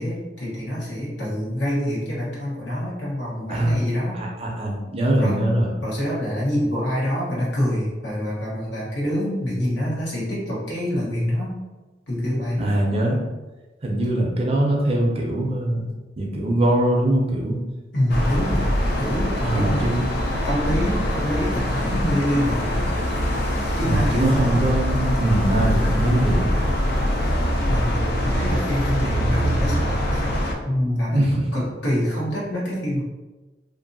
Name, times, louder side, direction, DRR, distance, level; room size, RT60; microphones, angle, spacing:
voice 1, 0.0-4.2 5.2-5.4 5.8-11.5 12.1-12.6 17.9-18.7 19.0-19.9 20.4-22.9 23.8-24.7 27.7-30.3 30.6-33.0, equal, 80° left, -7 dB, 1.2 m, -26 dB
voice 2, 4.1-5.7 12.6-13.3 13.8-15.9 16.2-17.6 19.4-20.0 21.9-22.0 23.8-26.5 31.1-31.6, right 1 dB, 35° right, -1 dB, 0.5 m, -22 dB
sound 1, 18.1-30.5, equal, 60° left, 0.5 m, -23 dB
2.6 x 2.5 x 2.6 m, 1.2 s
head